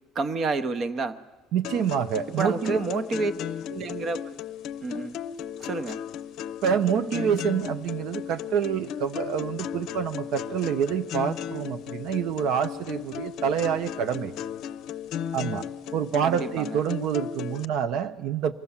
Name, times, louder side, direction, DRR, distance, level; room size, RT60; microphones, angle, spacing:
voice 1, 0.1-1.2 2.4-3.3 3.7-4.4 4.8-5.2 5.6-6.0 16.2-16.8, right 3 dB, 35° right, 11 dB, 0.9 m, -29 dB
voice 2, 1.5-2.8 6.6-14.3 15.3-15.7 15.9-18.5, right 8 dB, 65° right, 10 dB, 0.6 m, -27 dB
sound 1, 1.6-17.7, left 9 dB, 60° left, 0.6 m, -36 dB
23.5 x 15.0 x 7.2 m, 1.3 s
cardioid pair, 140°, 0 cm